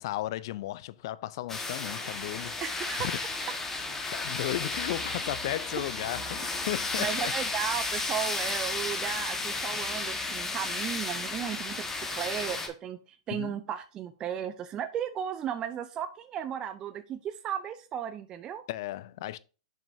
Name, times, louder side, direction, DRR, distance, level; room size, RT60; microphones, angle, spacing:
voice 1, 0.0-2.6 3.0-3.1 4.1-7.3 13.3-13.6 18.7-19.4, left 15 dB, 60° left, 0.4 m, -35 dB
sound 1, 1.5-12.7, left 3 dB, 15° left, 1.3 m, -33 dB
voice 2, 2.6-3.1 7.0-18.6, right 9 dB, 30° right, 0.5 m, -35 dB
7.3 x 5.2 x 2.7 m
hypercardioid pair, 115°, 3 cm